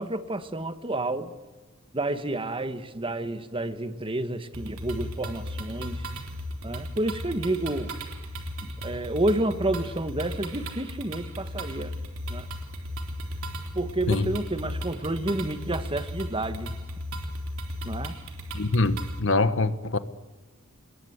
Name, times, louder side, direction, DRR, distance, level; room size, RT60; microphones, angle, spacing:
voice 1, 0.0-1.3 1.9-6.1 6.6-7.9 8.6-11.9 12.3-12.5 13.7-16.7 17.8-18.2, right 1 dB, 25° right, 1.5 m, -30 dB
sound 1, 4.5-19.2, equal, 80° right, 3.8 m, -36 dB
voice 2, 18.5-20.0, left 3 dB, 65° left, 1.4 m, -24 dB
27.5 x 21.5 x 8.2 m
head